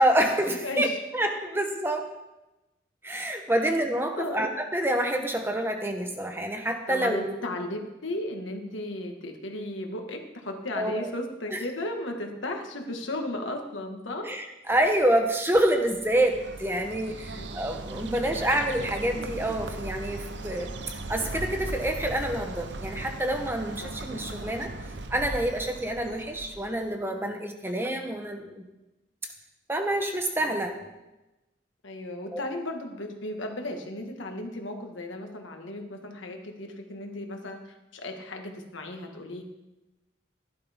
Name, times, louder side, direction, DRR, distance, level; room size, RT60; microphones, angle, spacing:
voice 1, 0.0-0.9 1.1-2.1 3.0-7.3 10.8-11.1 11.5-11.6 14.2-20.8 21.1-24.7 25.1-28.6 29.7-30.9 32.3-32.4, right 1 dB, 10° right, 4 dB, 1.0 m, -27 dB
voice 2, 0.6-1.0 4.2-4.5 6.9-14.3 17.3-17.5 23.8-23.9 31.8-39.4, left 1 dB, 85° left, 3 dB, 1.8 m, -35 dB
Bird, 15.5-26.9, right 2 dB, 65° right, 0.8 m, -38 dB
16.0 x 11.5 x 3.6 m, 1.0 s
head